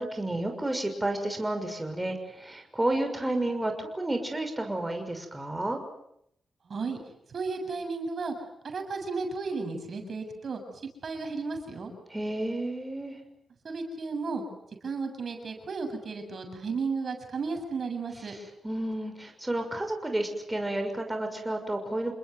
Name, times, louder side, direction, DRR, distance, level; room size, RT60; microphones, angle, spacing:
voice 1, 0.0-5.8 12.1-13.2 18.3-18.4 18.6-22.1, right 1 dB, 15° right, 5 dB, 6.4 m, -31 dB
voice 2, 6.7-7.0 7.3-8.3 8.6-10.6 11.0-11.9 13.6-14.4 14.8-18.4, right 4 dB, 60° right, 5 dB, 7.4 m, -33 dB
29.0 x 21.0 x 9.5 m, 0.75 s
cardioid pair, 65°, 0 cm